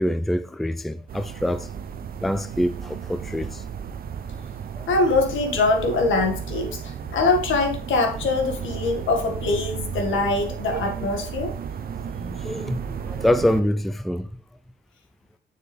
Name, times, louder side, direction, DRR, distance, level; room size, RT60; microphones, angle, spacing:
voice 1, 0.0-1.7 2.2-3.6 4.7-4.9 10.2-10.3 12.0-14.3, equal, ahead, 0.4 m, -25 dB
sound 1, 1.1-13.6, right 7 dB, 50° right, 0.7 m, -34 dB
voice 2, 4.9-11.5, left 3 dB, 75° left, 1.9 m, -23 dB
6.8 x 6.8 x 3.4 m
cardioid pair, 90°, 20 cm